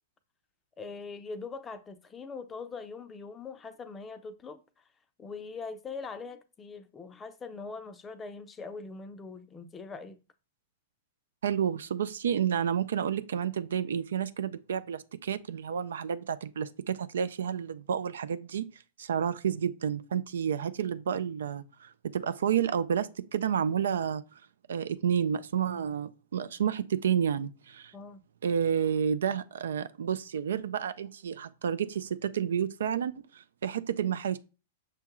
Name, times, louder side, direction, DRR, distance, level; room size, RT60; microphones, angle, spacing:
voice 1, 0.8-4.6 5.2-10.2 27.9-28.2, left 4 dB, 20° left, 0.5 m, -42 dB
voice 2, 11.4-24.4 24.7-27.9 28.4-34.4, right 8 dB, 70° right, 0.3 m, -30 dB
6.0 x 2.2 x 3.0 m
hypercardioid pair, 105°, 0 cm